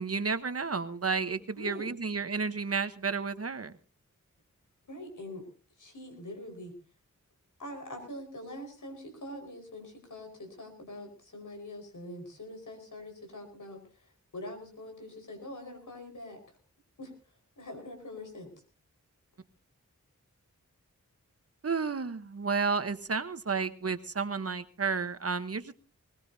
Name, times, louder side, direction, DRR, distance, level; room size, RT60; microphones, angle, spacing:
voice 1, 0.0-3.7 21.6-25.7, right 5 dB, 50° right, 11 dB, 1.1 m, -31 dB
voice 2, 1.3-1.9 4.9-5.5 5.8-6.7 7.6-16.4 17.0-17.1 17.6-18.5, left 1 dB, 80° left, 3 dB, 4.9 m, -44 dB
20.5 x 20.5 x 2.7 m, 0.35 s
wide cardioid pair, 85°, 30 cm